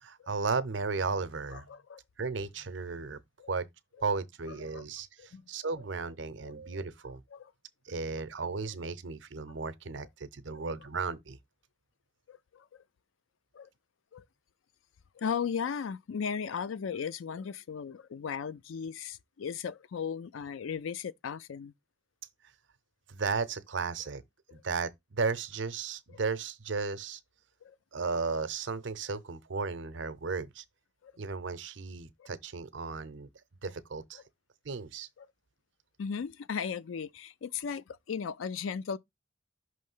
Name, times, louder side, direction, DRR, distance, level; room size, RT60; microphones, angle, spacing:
voice 1, 0.0-1.7 2.2-3.2 3.5-3.7 4.0-7.2 7.9-11.4 23.1-24.2 24.5-27.2 27.9-30.6 31.2-33.3 33.6-34.2 34.6-35.1, right 4 dB, 65° right, 0.7 m, -35 dB
voice 2, 1.5-2.0 3.4-3.5 4.6-4.8 5.2-5.5 6.4-6.5 7.3-7.5 8.1-8.2 10.0-10.1 10.5-10.6 12.3-12.8 13.5-13.7 14.1-14.2 15.1-21.7 24.5-24.6 27.6-27.8 31.0-31.1 32.2-32.3 35.2-35.3 36.0-39.0, left 6 dB, 90° left, 0.4 m, -37 dB
5.7 x 3.2 x 5.4 m
head